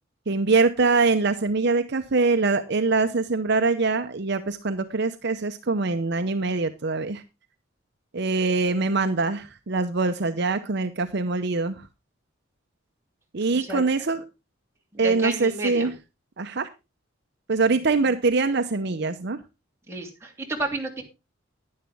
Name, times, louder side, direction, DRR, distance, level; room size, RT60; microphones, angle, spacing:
voice 1, 0.3-7.2 8.1-11.9 13.3-14.2 15.0-15.9 16.4-16.7 17.5-19.4, right 3 dB, 60° right, 9 dB, 0.8 m, -23 dB
voice 2, 14.9-15.9 18.0-18.1 19.9-21.0, right 2 dB, 15° right, 0 dB, 3.0 m, -31 dB
11.0 x 10.5 x 3.5 m, 0.26 s
head